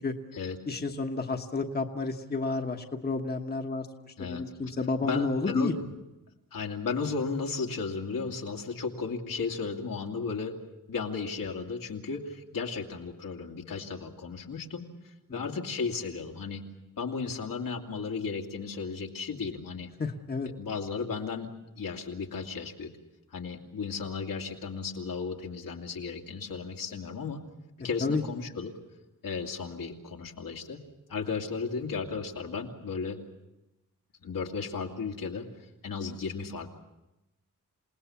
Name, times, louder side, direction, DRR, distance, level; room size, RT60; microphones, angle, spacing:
voice 1, 0.7-5.7 15.3-15.6 20.0-20.5 28.0-28.2, left 3 dB, 30° left, 4 dB, 1.2 m, -31 dB
voice 2, 5.0-5.8 6.5-10.6 10.9-16.6 17.0-19.9 20.5-22.9 23.3-27.4 27.8-28.8 29.2-30.8 31.1-33.2 34.2-36.7, left 5 dB, 80° left, 1 dB, 2.4 m, -35 dB
28.0 x 18.5 x 7.1 m, 0.98 s
wide cardioid pair, 125°, 33 cm